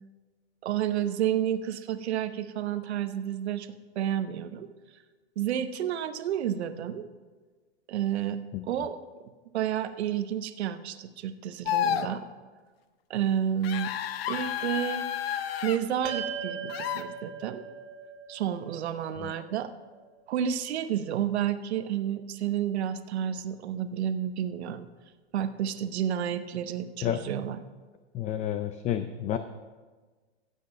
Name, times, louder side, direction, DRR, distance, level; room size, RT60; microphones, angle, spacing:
voice 1, 0.6-3.7 3.9-4.7 5.4-7.0 7.9-8.4 8.6-9.0 9.5-12.3 13.1-13.9 14.3-15.0 15.6-17.6 18.3-19.7 20.3-24.9 25.3-27.6, right 10 dB, 70° right, 11 dB, 1.0 m, -30 dB
sound 1, 11.7-12.1 13.6-15.8 16.7-17.0, left 10 dB, 60° left, 0.9 m, -30 dB
sound 2, 16.0-20.5, right 6 dB, 45° right, 2.1 m, -40 dB
voice 2, 28.1-29.4, left 11 dB, 20° left, 10 dB, 0.5 m, -30 dB
14.5 x 8.4 x 5.3 m, 1.4 s
hypercardioid pair, 120°, 33 cm